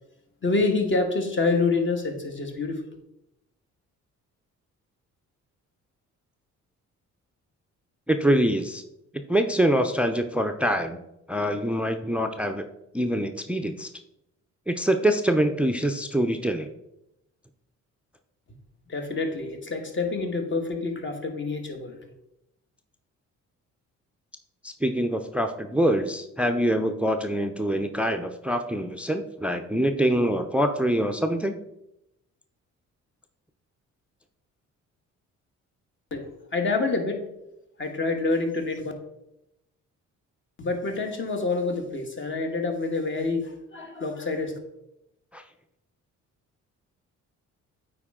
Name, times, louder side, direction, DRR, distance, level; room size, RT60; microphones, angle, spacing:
voice 1, 0.4-2.8 18.9-22.0 36.1-36.2 36.5-37.3 37.8-38.9 40.6-44.6, left 3 dB, 40° left, 4 dB, 1.5 m, -27 dB
voice 2, 8.1-8.8 9.1-11.0 11.3-12.6 12.9-13.9 14.7-16.7 24.6-31.6 45.3-45.4, equal, 5° right, 7 dB, 0.5 m, -25 dB
8.8 x 4.4 x 3.7 m, 0.86 s
cardioid pair, 90°, 30 cm